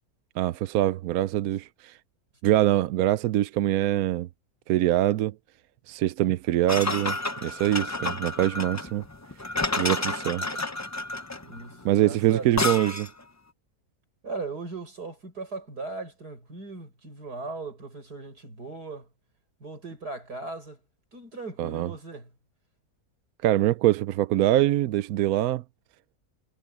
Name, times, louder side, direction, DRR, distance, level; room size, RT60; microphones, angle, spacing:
voice 1, 0.4-2.0 2.4-4.3 4.7-5.3 5.9-9.0 9.8-10.4 11.8-13.1 21.6-21.9 23.4-25.6, right 14 dB, 75° right, 1.0 m, -24 dB
sound 1, 6.7-13.2, left 2 dB, 25° left, 0.4 m, -30 dB
voice 2, 11.4-12.7 14.2-19.1 19.6-20.8 21.1-22.3, right 3 dB, 90° right, 7.1 m, -38 dB
omnidirectional pair, 1.6 m